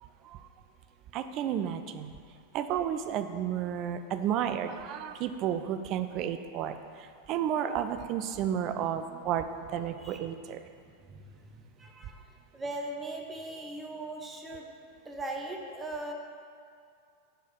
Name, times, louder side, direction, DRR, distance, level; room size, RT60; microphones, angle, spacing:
voice 1, 0.0-0.5 1.1-2.1 2.5-10.6, right 9 dB, 40° right, 9 dB, 0.3 m, -32 dB
voice 2, 11.0-12.2 12.5-14.7 15.0-16.1, right 2 dB, 15° right, 1 dB, 0.7 m, -39 dB
4.6 x 4.3 x 5.2 m, 2.3 s
figure-of-eight pair, 90°, 0 cm